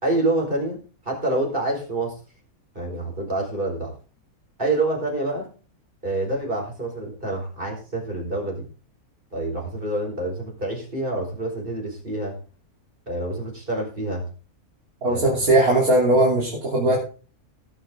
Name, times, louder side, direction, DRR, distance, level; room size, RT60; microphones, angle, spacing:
voice 1, 0.0-2.2 2.7-3.9 4.6-5.5 6.0-8.7 9.3-12.3 13.1-14.2 15.1-15.2, right 2 dB, 35° right, 0 dB, 4.8 m, -27 dB
voice 2, 15.0-17.0, right 1 dB, 80° right, -4 dB, 3.6 m, -19 dB
18.5 x 8.5 x 3.7 m, 0.37 s
omnidirectional pair, 1.5 m